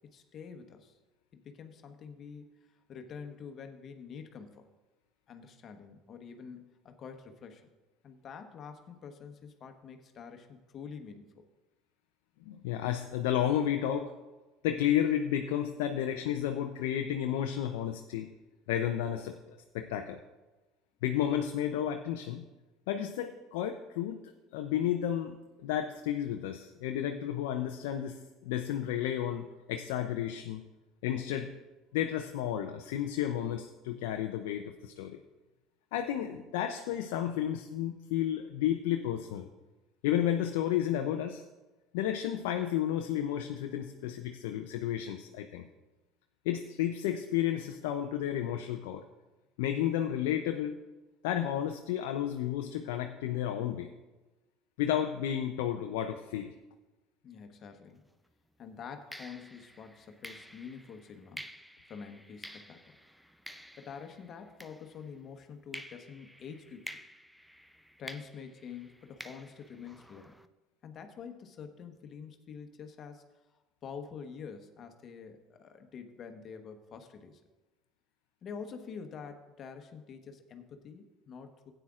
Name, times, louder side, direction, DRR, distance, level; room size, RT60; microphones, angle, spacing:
voice 1, 0.1-1.0 1.3-4.7 5.3-7.7 8.0-11.5 57.2-58.0 58.6-61.5 61.9-63.0 63.8-67.0 68.0-70.4 70.8-73.2 73.8-77.4 78.4-81.7, left 6 dB, 45° left, 6 dB, 1.2 m, -47 dB
voice 2, 12.5-14.1 14.6-18.3 18.7-20.2 21.0-22.5 22.9-25.4 25.6-30.6 31.0-31.5 31.9-35.2 35.9-39.5 40.0-41.4 41.9-45.7 46.4-49.1 49.6-50.7 51.2-53.9 54.8-56.5, left 10 dB, 75° left, 5 dB, 0.5 m, -32 dB
sound 1, 58.0-58.2 59.1-65.3 65.7-70.5, equal, ahead, 0.5 m, -50 dB
16.0 x 9.1 x 2.4 m, 1.2 s
hypercardioid pair, 70°, 0 cm